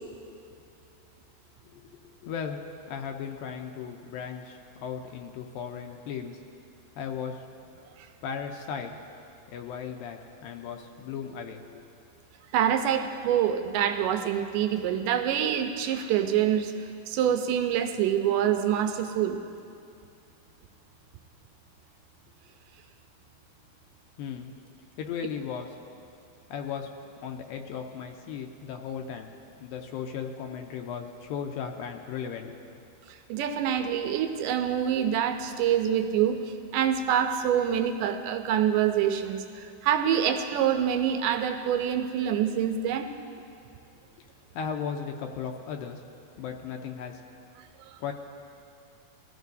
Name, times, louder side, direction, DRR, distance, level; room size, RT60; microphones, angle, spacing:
voice 1, 2.2-2.6 2.9-6.4 7.0-7.4 8.2-8.9 9.5-11.8 24.2-24.5 25.0-25.8 26.5-26.9 27.2-29.3 29.6-32.6 44.5-46.0 46.4-47.2 48.0-48.1, left 7 dB, 80° left, 4 dB, 2.3 m, -36 dB
voice 2, 12.5-19.4 33.1-43.1 47.8-48.0, right 9 dB, 80° right, 7 dB, 1.9 m, -26 dB
21.0 x 14.0 x 2.7 m, 2.5 s
omnidirectional pair, 4.3 m